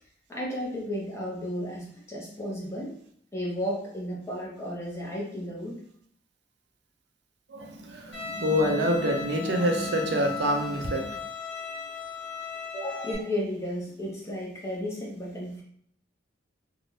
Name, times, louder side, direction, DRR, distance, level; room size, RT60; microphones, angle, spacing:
voice 1, 0.3-2.9 3.3-5.8 12.7-15.6, equal, 15° left, -4 dB, 0.7 m, -33 dB
voice 2, 7.5-11.2, equal, 65° right, 3 dB, 0.4 m, -26 dB
Bowed string instrument, 8.1-13.1, left 6 dB, 75° left, 0.8 m, -37 dB
2.6 x 2.2 x 3.1 m, 0.63 s
head